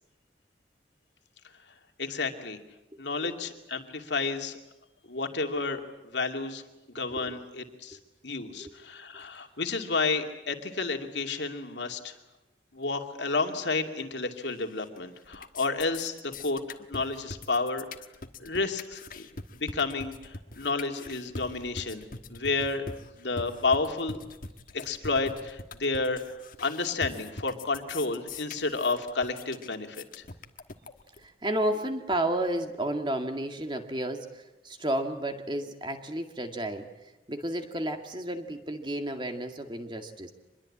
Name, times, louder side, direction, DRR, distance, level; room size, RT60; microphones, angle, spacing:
voice 1, 2.0-2.6 3.0-4.6 5.1-5.8 6.1-6.6 6.9-8.0 8.2-12.1 12.7-16.1 16.4-17.9 18.4-19.3 19.6-22.0 22.3-22.8 23.2-24.2 24.7-30.0, left 3 dB, 80° left, 5 dB, 2.6 m, -31 dB
voice 2, 2.9-3.3 7.0-7.4 7.9-8.0 8.5-8.7 31.2-36.9 37.3-40.3, right 1 dB, 25° right, 5 dB, 2.2 m, -32 dB
sound 1, 14.5-15.0 15.3-31.3, left 3 dB, 50° left, 1.5 m, -42 dB
25.5 x 21.5 x 8.7 m, 0.99 s
head